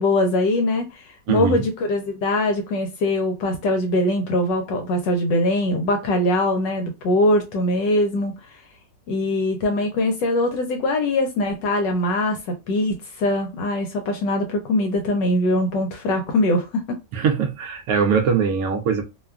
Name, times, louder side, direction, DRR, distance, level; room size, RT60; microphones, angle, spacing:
voice 1, 0.0-8.6 9.1-17.0, left 1 dB, 75° left, 1.2 m, -22 dB
voice 2, 1.3-1.6 17.1-19.0, right 6 dB, 70° right, 0.8 m, -21 dB
3.1 x 2.2 x 2.3 m
omnidirectional pair, 2.1 m